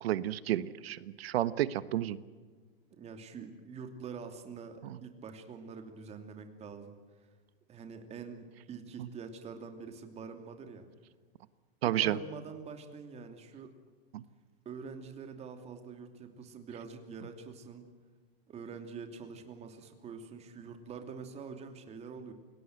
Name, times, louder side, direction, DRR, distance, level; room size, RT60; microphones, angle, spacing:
voice 1, 0.0-2.2 4.8-5.0 11.8-12.2 14.1-14.2, right 13 dB, 75° right, 15 dB, 1.3 m, -31 dB
voice 2, 2.9-6.9 7.7-10.8 11.8-13.7 14.6-17.9 18.5-22.3, right 5 dB, 20° right, 6 dB, 2.9 m, -45 dB
28.5 x 18.0 x 8.0 m, 1.5 s
supercardioid pair, 150°, 31 cm